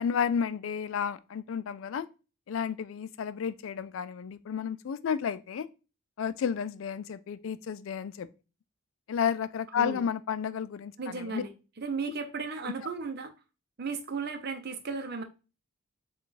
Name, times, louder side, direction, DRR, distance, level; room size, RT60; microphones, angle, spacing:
voice 1, 0.0-2.1 2.5-5.7 6.2-8.3 9.1-11.4 12.6-12.7, left 7 dB, 70° left, 0.4 m, -32 dB
voice 2, 11.0-11.5 11.8-13.3 13.8-15.2, right 4 dB, 50° right, 0.6 m, -35 dB
4.6 x 2.4 x 4.0 m
head